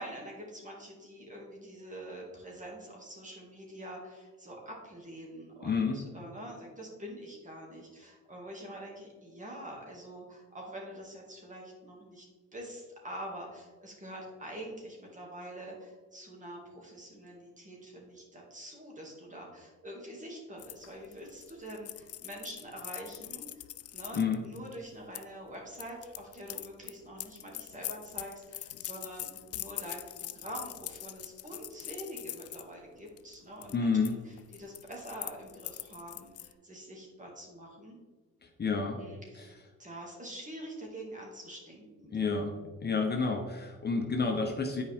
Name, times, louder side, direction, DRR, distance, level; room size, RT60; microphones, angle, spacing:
voice 1, 0.0-12.3 12.5-23.7 23.9-38.0 38.9-42.4, right 1 dB, 25° right, -1 dB, 2.3 m, -45 dB
voice 2, 5.6-6.0 24.1-24.4 33.7-34.1 38.4-39.0 39.4-39.5 42.1-42.6 42.8-44.8, left 4 dB, 35° left, 2 dB, 0.9 m, -29 dB
sound 1, 20.6-25.2 25.7-32.6 33.1-33.3 33.6-34.1 34.4-36.5, left 13 dB, 55° left, 0.4 m, -43 dB
9.6 x 4.8 x 3.6 m, 1.4 s
cardioid pair, 90°, 30 cm